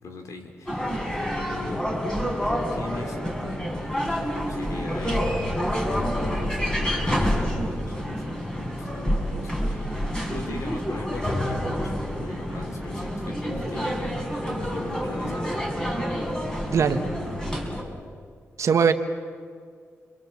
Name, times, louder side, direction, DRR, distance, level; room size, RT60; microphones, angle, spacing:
voice 1, 0.0-1.9 2.4-3.8 4.2-5.3 6.0-14.2 14.6-16.1 16.8-17.5, left 3 dB, 75° left, 5 dB, 3.1 m, -40 dB
sound 1, 0.7-17.8, equal, 15° left, 5.6 m, -28 dB
voice 2, 18.6-18.9, right 6 dB, 70° right, 7 dB, 1.5 m, -20 dB
30.0 x 22.5 x 7.3 m, 2.1 s
cardioid pair, 70°, 5 cm